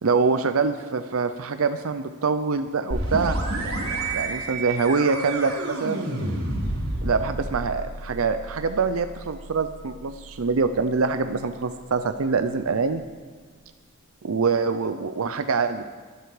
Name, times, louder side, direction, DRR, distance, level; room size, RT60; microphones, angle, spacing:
voice 1, 0.0-3.4 4.1-6.0 7.0-13.0 14.2-15.8, right 4 dB, 70° right, 9 dB, 0.6 m, -24 dB
sound 1, 2.9-12.5, right 2 dB, 85° right, 3.0 m, -31 dB
22.5 x 8.0 x 4.9 m, 1.5 s
head